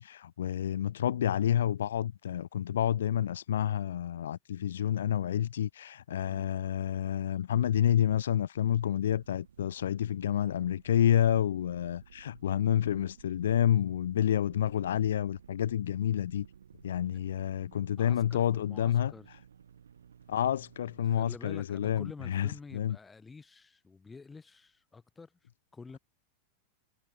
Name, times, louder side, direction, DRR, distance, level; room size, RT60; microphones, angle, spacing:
voice 1, 0.0-16.5 16.8-19.1 20.3-23.0, left 10 dB, 65° left, 0.6 m, -29 dB
sound 1, 8.7-21.1, right 8 dB, 65° right, 7.0 m, -56 dB
voice 2, 18.0-19.3 21.0-25.4 25.7-26.0, left 4 dB, 15° left, 2.2 m, -49 dB
figure-of-eight pair, 90°, 0 cm